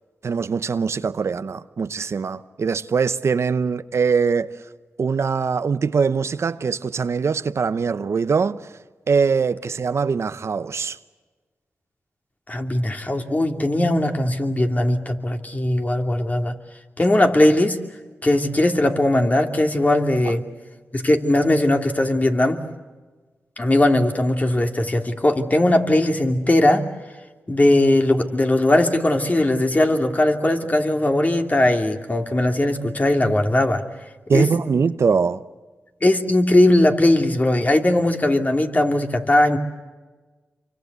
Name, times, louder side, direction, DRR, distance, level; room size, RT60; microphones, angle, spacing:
voice 1, 0.2-4.5 5.0-8.6 9.1-11.0 20.2-20.3 34.3-35.4, right 5 dB, 65° right, 0.9 m, -22 dB
voice 2, 12.5-16.6 17.0-17.8 18.2-20.4 20.9-22.6 23.6-26.8 27.5-33.8 34.3-34.5 36.0-39.6, left 1 dB, 30° left, 2.8 m, -19 dB
26.5 x 24.5 x 8.1 m
cardioid pair, 50°, 5 cm